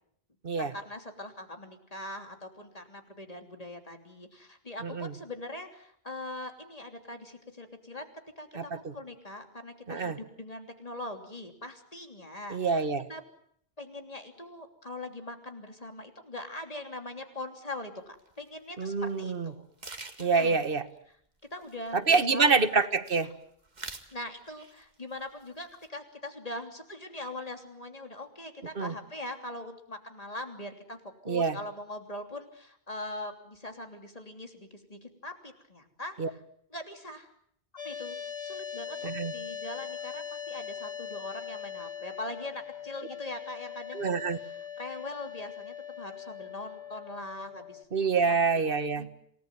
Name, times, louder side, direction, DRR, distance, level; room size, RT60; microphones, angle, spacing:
voice 1, 0.6-8.1 8.4-13.2 13.8-19.6 20.2-20.6 21.5-22.5 23.2-23.4 24.1-31.0 31.2-36.4 36.7-37.3 37.8-44.1 44.4-47.8 48.2-48.4 48.9-49.2, left 1 dB, 35° left, 5 dB, 3.2 m, -42 dB
voice 2, 8.5-8.9 9.9-10.2 12.5-13.1 18.8-19.5 20.2-20.8 21.9-23.3 28.8-28.9 31.3-31.5 36.2-36.3 39.0-39.3 43.9-44.4 47.9-49.1, right 4 dB, 60° right, 12 dB, 1.5 m, -26 dB
sound 1, 18.2-18.3 18.9-19.1 19.3-19.4 19.8-20.6 21.4-22.4 22.7-23.3 23.6-24.1 24.5-24.9 25.2-25.9, right 2 dB, 45° right, 2.1 m, -45 dB
sound 2, 37.8-47.8, left 8 dB, 90° left, 2.5 m, -41 dB
27.5 x 18.5 x 9.3 m, 0.69 s
omnidirectional pair, 1.0 m